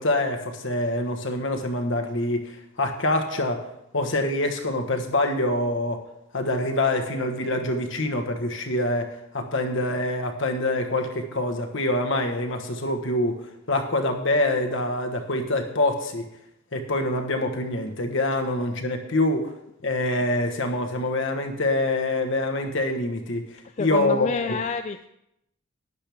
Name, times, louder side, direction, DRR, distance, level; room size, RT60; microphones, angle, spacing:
voice 1, 0.0-3.6 3.9-6.0 6.3-9.1 9.3-13.4 13.7-16.3 16.7-19.5 19.8-23.4 23.8-24.6, left 1 dB, 60° left, 4 dB, 1.3 m, -25 dB
voice 2, 23.8-25.1, left 5 dB, 35° left, 8 dB, 0.3 m, -28 dB
12.0 x 9.8 x 3.5 m, 0.83 s
head